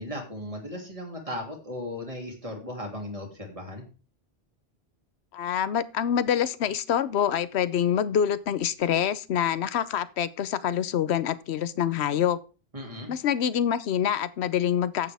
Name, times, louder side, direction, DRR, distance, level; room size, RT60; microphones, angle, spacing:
voice 1, 0.0-3.8 12.7-13.1, left 1 dB, 30° right, 2 dB, 2.7 m, -36 dB
voice 2, 5.3-12.4 13.1-15.1, left 9 dB, 85° left, 16 dB, 1.0 m, -26 dB
10.5 x 8.5 x 3.4 m, 0.34 s
omnidirectional pair, 1.1 m